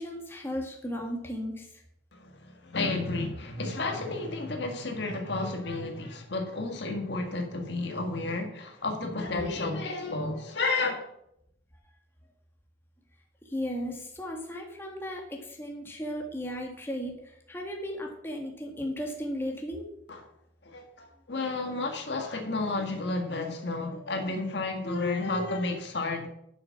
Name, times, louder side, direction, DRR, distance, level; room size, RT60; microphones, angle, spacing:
voice 1, 0.0-1.8 13.4-19.9, equal, 10° left, 1.9 m, -35 dB
voice 2, 2.1-11.1 20.1-20.3 20.6-26.3, left 3 dB, 65° left, 1.8 m, -32 dB
11.0 x 7.1 x 5.9 m
head